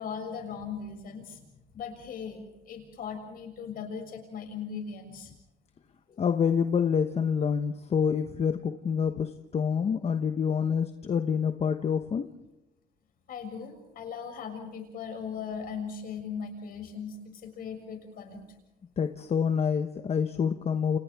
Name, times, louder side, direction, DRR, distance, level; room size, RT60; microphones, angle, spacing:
voice 1, 0.0-1.4 1.7-5.3 13.3-18.4, left 6 dB, 60° left, 4 dB, 6.7 m, -38 dB
voice 2, 6.2-12.3 19.0-21.0, left 7 dB, 40° left, 8 dB, 1.0 m, -27 dB
30.0 x 29.0 x 3.6 m, 0.99 s
cardioid pair, 110°, 17 cm